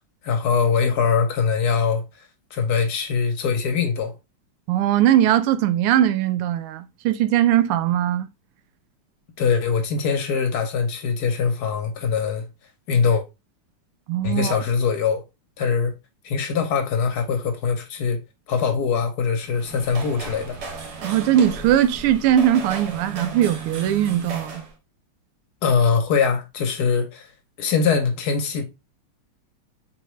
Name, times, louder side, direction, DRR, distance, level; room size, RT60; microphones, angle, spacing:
voice 1, 0.2-2.0 2.5-4.1 9.4-12.5 12.9-13.2 14.2-15.2 15.6-15.9 16.2-18.2 18.5-20.6 25.6-27.3 27.6-28.6, left 5 dB, 60° left, 1.1 m, -22 dB
voice 2, 4.7-8.3 14.1-14.6 21.0-24.6, right 11 dB, 85° right, 1.5 m, -20 dB
sound 1, 19.4-24.7, right 4 dB, 60° right, 1.3 m, -35 dB
4.1 x 4.0 x 3.1 m
omnidirectional pair, 2.4 m